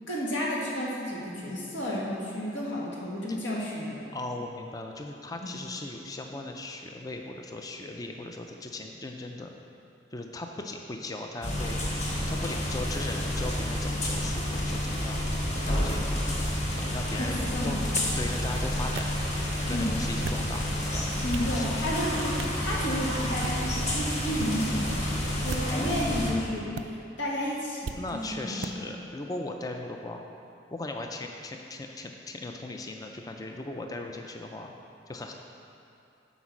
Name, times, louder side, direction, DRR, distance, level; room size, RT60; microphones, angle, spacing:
voice 1, 0.1-4.1 5.4-5.5 17.2-18.0 19.7-19.9 21.2-26.7 27.2-28.8, equal, 75° left, -4 dB, 1.7 m, -32 dB
voice 2, 4.1-9.5 10.1-11.8 12.3-15.2 15.6-16.3 16.7-17.8 18.2-21.8 25.7-26.6 27.9-30.2 30.7-34.7 35.1-35.3, left 2 dB, 20° left, 3 dB, 0.4 m, -38 dB
sound 1, 11.4-26.3, left 1 dB, 35° left, 1.2 m, -29 dB
sound 2, 18.0-18.1 19.0-19.1 20.0-20.5 21.0-21.5 22.4-22.6 23.3-23.6 24.3-24.5 25.4-25.9 26.7-26.8 27.8-28.0 28.6-28.7, right 5 dB, 65° right, 0.4 m, -37 dB
8.2 x 5.0 x 6.0 m, 2.7 s
head